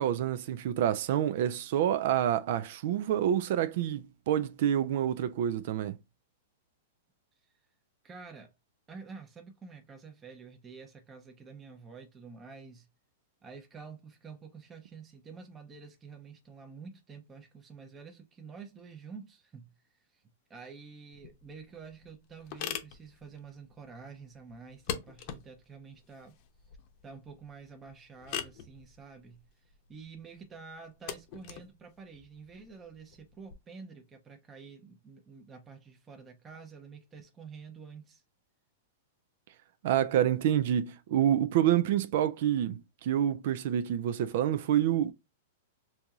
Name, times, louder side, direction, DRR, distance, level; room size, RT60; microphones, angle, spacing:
voice 1, 0.0-6.0 39.8-45.1, right 10 dB, 60° right, 0.3 m, -28 dB
voice 2, 8.0-8.5 8.9-12.9 13.4-20.2 20.5-26.4 27.0-38.2, right 5 dB, 20° right, 0.7 m, -49 dB
sound 1, 21.1-33.5, left 9 dB, 50° left, 0.7 m, -44 dB
4.4 x 2.7 x 2.3 m
hypercardioid pair, 130°, 0 cm